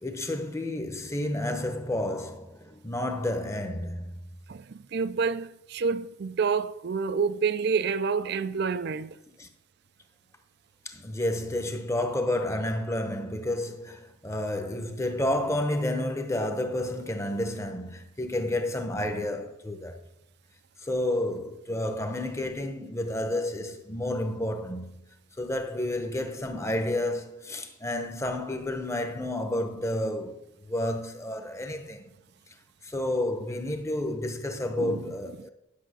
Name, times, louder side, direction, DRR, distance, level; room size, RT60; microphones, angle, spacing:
voice 1, 0.0-4.1 9.4-9.5 10.8-20.0 20.8-25.0 25.4-30.4 30.7-32.1 32.8-35.5, left 1 dB, 15° left, 0.9 m, -30 dB
voice 2, 4.5-9.2 34.8-35.0, right 5 dB, 55° right, 0.4 m, -28 dB
10.5 x 6.2 x 6.4 m
head